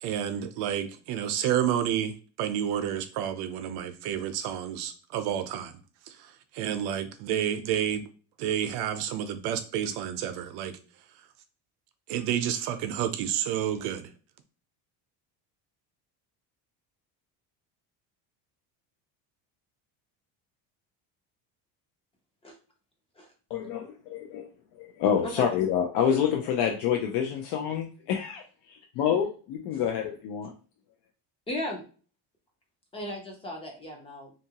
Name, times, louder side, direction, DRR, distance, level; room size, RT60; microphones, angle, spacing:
voice 1, 0.0-5.7 6.1-8.0 8.4-10.8 12.1-14.1, right 10 dB, 65° right, 9 dB, 0.5 m, -30 dB
voice 2, 23.5-24.5 24.7-28.4 29.0-30.5, left 8 dB, 65° left, 2 dB, 0.5 m, -27 dB
voice 3, 31.5-31.8 32.9-34.3, left 1 dB, 15° left, 1 dB, 0.4 m, -36 dB
2.7 x 2.5 x 2.8 m, 0.39 s
cardioid pair, 165°, 41 cm